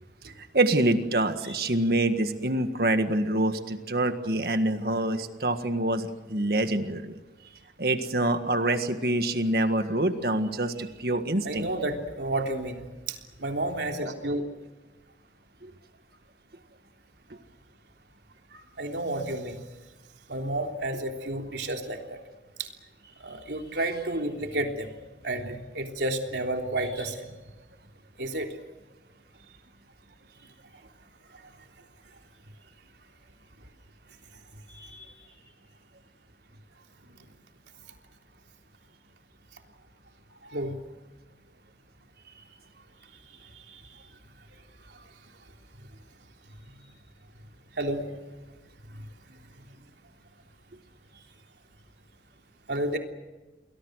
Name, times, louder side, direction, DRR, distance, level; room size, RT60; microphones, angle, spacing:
voice 1, 0.5-7.1 7.8-11.7 15.6-15.7, right 1 dB, 60° right, 8 dB, 1.7 m, -26 dB
voice 2, 11.4-14.4 18.5-19.6 20.3-22.2 22.6-22.7 23.2-24.9 25.2-27.3 28.2-28.5 34.7-35.1 40.4-40.7 43.7-43.8 47.8-48.1 52.7-53.0, right 1 dB, 80° right, 3 dB, 3.5 m, -31 dB
29.5 x 21.5 x 6.5 m, 1.2 s
head